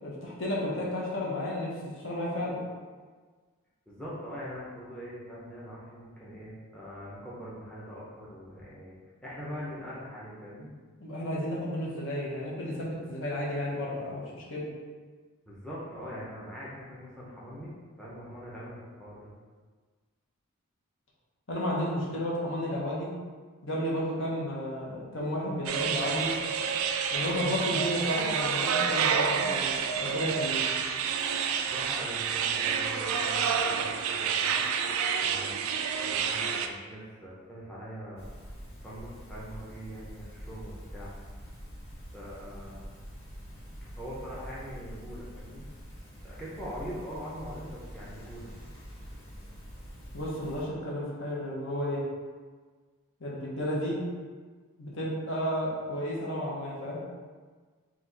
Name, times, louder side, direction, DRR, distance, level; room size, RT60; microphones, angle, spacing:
voice 1, 0.0-1.8 2.0-2.6 11.0-14.6 21.5-23.1 23.6-26.3 27.1-30.6 50.1-52.0 53.2-54.0 54.8-57.0, left 1 dB, 55° left, -5 dB, 1.0 m, -32 dB
voice 2, 3.9-9.0 9.2-10.7 15.5-17.7 18.0-19.3 31.6-34.6 35.2-35.7 36.1-38.3 38.8-41.1 42.1-42.9 43.8-45.6 46.2-48.5, equal, 5° left, -8 dB, 0.6 m, -42 dB
sound 1, 25.7-36.7, right 7 dB, 65° right, 0.3 m, -29 dB
sound 2, 38.2-50.6, equal, 25° left, 1.2 m, -45 dB
4.7 x 2.4 x 3.9 m, 1.5 s
head